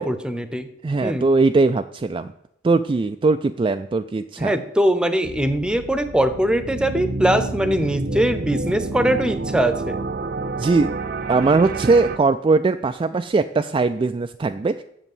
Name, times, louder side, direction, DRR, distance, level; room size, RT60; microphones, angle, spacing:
voice 1, 0.0-0.7 1.0-1.3 4.4-10.0, right 1 dB, 5° right, 11 dB, 0.8 m, -21 dB
voice 2, 0.8-2.3 2.6-4.5 10.6-11.0 11.3-14.8, right 3 dB, 25° right, 8 dB, 0.3 m, -20 dB
sound 1, 5.2-12.2, right 3 dB, 60° right, 0.7 m, -29 dB
8.1 x 7.1 x 7.2 m, 0.80 s
head